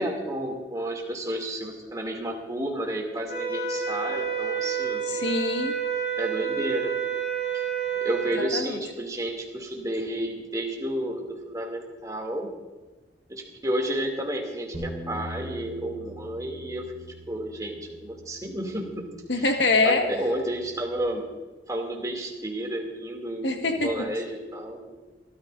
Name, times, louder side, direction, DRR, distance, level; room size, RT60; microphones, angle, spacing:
voice 1, 0.0-5.0 6.2-7.0 7.5-7.6 8.0-12.5 13.3-16.9 17.3-19.0 19.4-19.5 19.8-21.2 21.7-25.0, right 1 dB, 20° right, 0 dB, 2.7 m, -31 dB
sound 1, 3.3-8.4, right 7 dB, 60° left, 4.8 m, -29 dB
voice 2, 5.0-5.8 8.5-8.8 19.3-20.0 23.4-24.1, left 3 dB, 85° left, 3 dB, 1.7 m, -24 dB
Bass guitar, 14.7-21.0, equal, 15° left, 4.1 m, -43 dB
27.0 x 13.5 x 2.7 m, 1.2 s
head